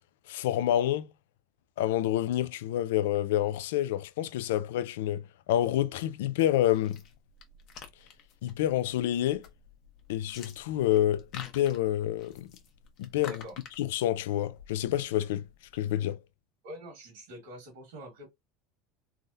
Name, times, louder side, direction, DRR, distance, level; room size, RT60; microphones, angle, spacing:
voice 1, 0.3-1.1 1.8-7.0 8.4-9.4 10.1-12.5 13.0-13.4 13.8-15.4 15.7-16.2, left 12 dB, 90° left, 0.3 m, -28 dB
sound 1, 6.7-15.8, left 6 dB, 45° left, 0.7 m, -50 dB
voice 2, 13.3-13.6 16.6-18.3, equal, 90° right, 1.6 m, -45 dB
3.4 x 2.2 x 2.6 m
supercardioid pair, 140°, 0 cm